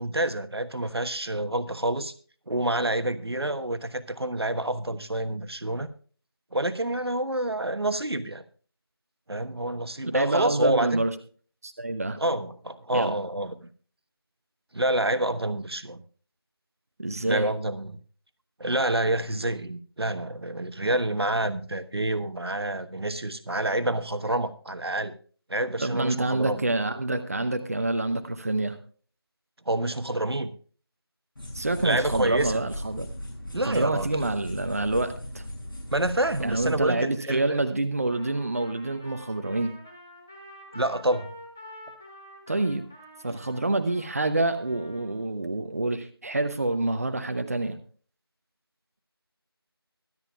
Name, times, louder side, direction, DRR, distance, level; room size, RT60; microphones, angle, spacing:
voice 1, 0.0-2.1 2.5-5.9 6.5-8.4 9.3-11.0 12.2-13.7 14.7-16.0 17.2-18.0 18.6-25.2 25.5-26.6 29.7-30.5 31.8-32.6 33.5-34.1 35.9-37.6 40.7-41.3 43.3-43.4, right 1 dB, 75° right, 11 dB, 1.2 m, -28 dB
voice 2, 10.1-11.1 11.6-12.2 12.9-13.1 17.0-17.5 25.8-28.8 31.5-33.1 33.7-35.4 36.4-39.7 42.5-42.9 43.2-47.8, right 2 dB, 35° right, 9 dB, 0.8 m, -27 dB
sound 1, 31.4-36.9, left 1 dB, 55° left, 6.8 m, -37 dB
Trumpet, 38.1-45.2, left 1 dB, 5° left, 0.6 m, -48 dB
24.0 x 8.8 x 2.3 m, 0.41 s
figure-of-eight pair, 170°, 13 cm